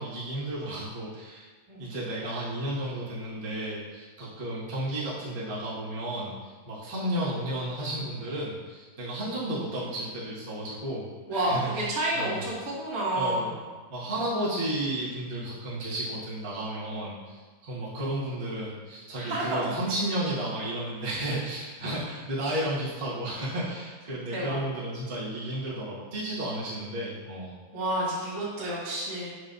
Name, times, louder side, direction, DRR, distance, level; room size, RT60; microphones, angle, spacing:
voice 1, 0.0-1.5 1.8-12.4 13.1-13.5 13.9-27.6, right 1 dB, 55° right, -9 dB, 0.6 m, -33 dB
voice 2, 11.3-13.5 19.2-19.5 19.9-20.0 24.3-24.6 27.7-29.3, right 1 dB, 20° right, -9 dB, 0.7 m, -30 dB
6.8 x 6.3 x 2.7 m, 1.4 s
omnidirectional pair, 4.2 m